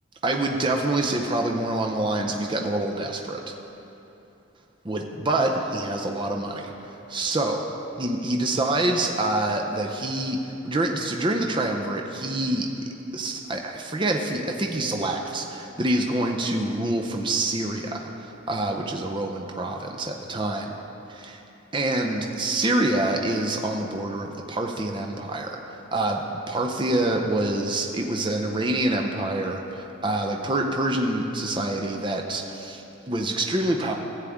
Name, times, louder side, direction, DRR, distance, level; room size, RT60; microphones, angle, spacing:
voice 1, 0.2-3.4 4.8-6.7 7.1-7.6 8.0-12.7 13.1-20.7 21.1-21.4 21.7-26.2 26.5-33.9, right 2 dB, 20° right, 2 dB, 0.5 m, -26 dB
15.0 x 8.1 x 3.6 m, 3.0 s
head